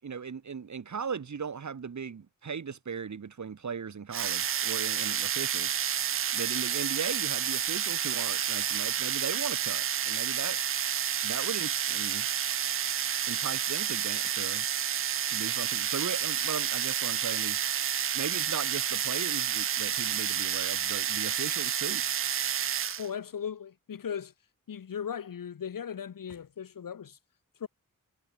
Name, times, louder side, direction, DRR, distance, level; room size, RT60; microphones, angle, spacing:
voice 1, 0.0-5.7 6.3-10.6 11.2-12.3 13.3-14.7 15.3-17.8 18.1-22.0, right 6 dB, 60° right, 6.0 m, -38 dB
sound 1, 4.1-23.1, right 9 dB, 45° right, 0.4 m, -30 dB
voice 2, 23.0-24.3 24.7-27.2 27.6-27.7, left 8 dB, 90° left, 3.7 m, -37 dB
wide cardioid pair, 145°, 32 cm